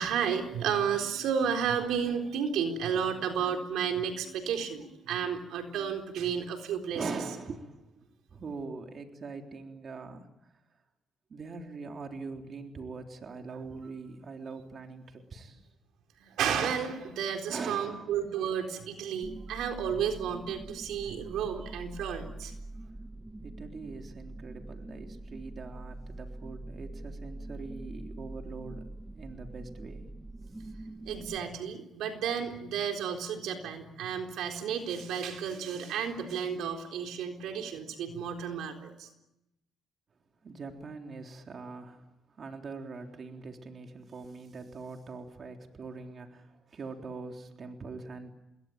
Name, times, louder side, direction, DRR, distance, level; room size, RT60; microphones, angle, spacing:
voice 1, 0.0-7.0 16.2-22.5 31.0-39.1, right 7 dB, 85° right, 4 dB, 4.0 m, -32 dB
voice 2, 6.9-10.3 11.3-15.6 17.5-18.1 19.5-19.6 21.3-21.4 23.4-28.8 29.1-30.1 40.4-42.1 42.4-48.3, right 4 dB, 45° right, 3 dB, 3.6 m, -42 dB
sound 1, 19.2-31.4, right 2 dB, 10° right, 1.4 m, -44 dB
28.5 x 21.5 x 9.0 m, 0.90 s
cardioid pair, 90°, 0 cm